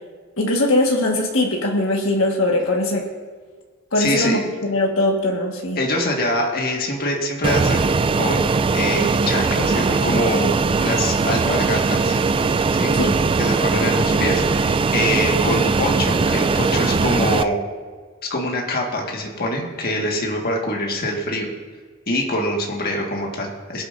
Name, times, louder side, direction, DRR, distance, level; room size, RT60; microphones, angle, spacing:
voice 1, 0.4-3.0 3.9-5.8 11.4-11.6 12.9-13.1, left 1 dB, 70° left, 0 dB, 1.5 m, -21 dB
voice 2, 3.9-4.4 5.7-7.9 8.2-8.5 8.7-10.5 10.8-12.9 13.4-17.6 18.3-21.5 22.1-23.9, left 1 dB, 50° left, 0 dB, 1.7 m, -24 dB
Fixed-wing aircraft airplane, 7.4-17.4, right 4 dB, 25° right, 0.3 m, -20 dB
21.5 x 8.5 x 2.6 m, 1.6 s
head